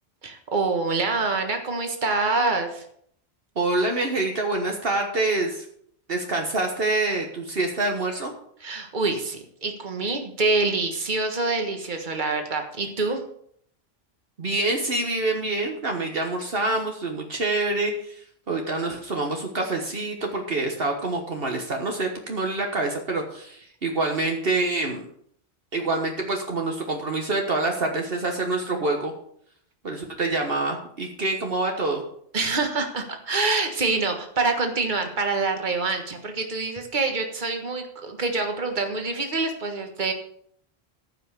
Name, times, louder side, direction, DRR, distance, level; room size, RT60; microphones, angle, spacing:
voice 1, 0.2-2.8 8.6-13.2 32.3-40.1, right 3 dB, 50° right, 4 dB, 1.7 m, -26 dB
voice 2, 3.6-5.6 6.1-8.3 14.4-18.2 18.5-25.0 25.7-29.1 29.8-32.0, right 2 dB, 65° right, 2 dB, 1.6 m, -26 dB
14.5 x 5.9 x 6.7 m, 0.65 s
omnidirectional pair, 1.1 m